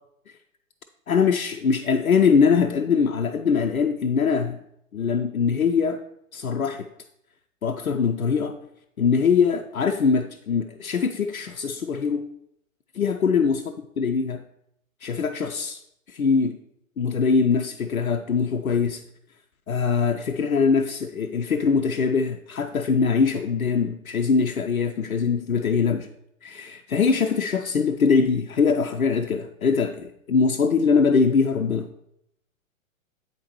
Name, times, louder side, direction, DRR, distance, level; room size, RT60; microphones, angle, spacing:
voice 1, 1.1-4.6 4.9-6.0 6.3-6.9 7.6-8.6 9.0-12.3 12.9-13.6 14.0-14.4 15.0-15.8 16.1-16.6 17.0-19.0 19.7-26.1 26.4-31.9, left 5 dB, 85° left, 5 dB, 0.5 m, -22 dB
8.1 x 5.2 x 3.0 m, 0.78 s
figure-of-eight pair, 120°, 41 cm